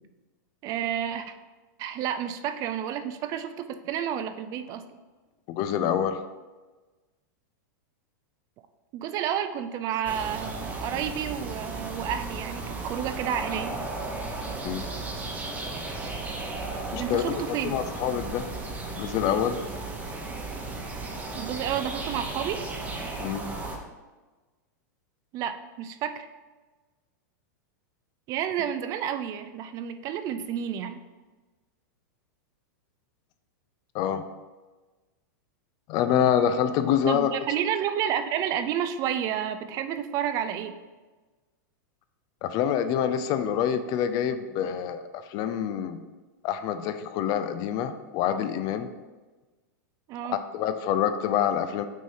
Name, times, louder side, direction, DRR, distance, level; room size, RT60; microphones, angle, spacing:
voice 1, 0.6-1.3 1.8-4.8 8.9-13.7 17.0-17.8 21.4-22.6 25.3-26.3 28.3-30.9 37.1-40.7 50.1-50.4, right 9 dB, 35° right, 10 dB, 0.4 m, -30 dB
voice 2, 5.5-6.2 14.6-14.9 16.9-18.5 18.9-19.6 23.2-23.5 33.9-34.3 35.9-37.3 42.4-45.0 45.3-46.0 46.4-48.9 50.3-51.9, left 9 dB, 40° left, 10 dB, 0.4 m, -26 dB
sound 1, 10.0-23.8, right 3 dB, 15° right, 0.9 m, -35 dB
6.2 x 2.7 x 5.5 m, 1.3 s
supercardioid pair, 135°, 10 cm